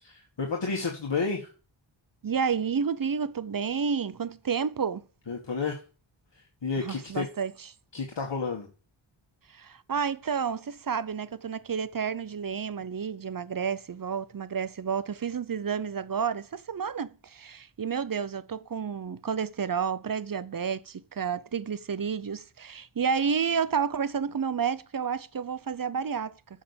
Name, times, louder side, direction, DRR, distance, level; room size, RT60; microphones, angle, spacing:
voice 1, 0.0-1.5 5.3-5.8 6.6-7.3 7.9-8.7, left 4 dB, 60° left, 1.9 m, -31 dB
voice 2, 2.2-5.0 6.8-7.7 9.5-26.3, right 6 dB, 45° right, 0.6 m, -30 dB
8.7 x 6.5 x 7.2 m
wide cardioid pair, 80°, 48 cm